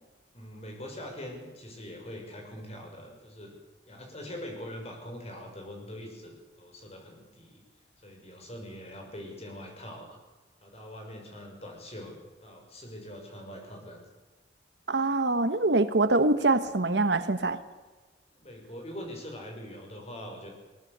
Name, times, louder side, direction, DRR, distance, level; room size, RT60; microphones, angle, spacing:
voice 1, 0.3-3.5 3.9-7.6 8.0-10.2 10.6-14.0 18.3-20.5, equal, 35° left, 6.2 m, -43 dB
voice 2, 14.9-17.6, right 2 dB, 75° right, 1.4 m, -24 dB
21.0 x 18.5 x 8.2 m
head